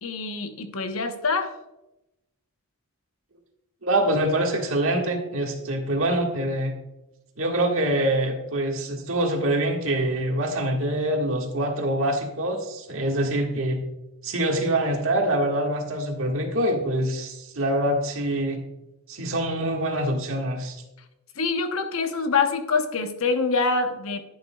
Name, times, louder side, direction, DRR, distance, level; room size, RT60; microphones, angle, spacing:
voice 1, 0.0-1.5 21.4-24.2, left 4 dB, 70° left, 7 dB, 0.9 m, -25 dB
voice 2, 3.8-6.7 7.4-13.8 14.2-18.6 19.1-20.8, right 1 dB, 65° right, 1 dB, 1.7 m, -25 dB
11.0 x 11.0 x 2.3 m, 0.94 s
head